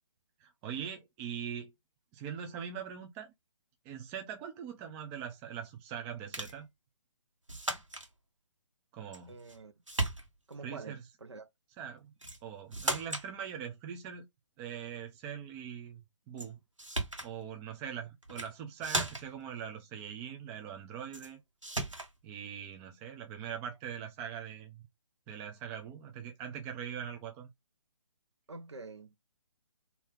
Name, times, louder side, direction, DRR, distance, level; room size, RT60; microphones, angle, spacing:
voice 1, 0.4-1.7 2.1-3.3 3.8-6.7 8.9-9.4 10.6-11.0 11.8-12.1 12.4-14.3 14.6-16.6 17.2-21.4 22.2-24.8 25.3-27.5, right 8 dB, 15° right, 0.5 m, -42 dB
sound 1, 6.3-6.6 7.5-8.1 9.1-9.6 9.9-10.6 12.2-12.4 12.7-13.3 16.4-16.5 16.8-17.3 18.2-18.5 18.8-19.4 21.1-21.3 21.6-22.1, right 2 dB, 90° right, 1.4 m, -36 dB
voice 2, 9.3-9.7 10.5-11.5 28.5-29.1, right 3 dB, 65° right, 1.0 m, -47 dB
4.2 x 2.8 x 3.4 m
figure-of-eight pair, 135°, 16 cm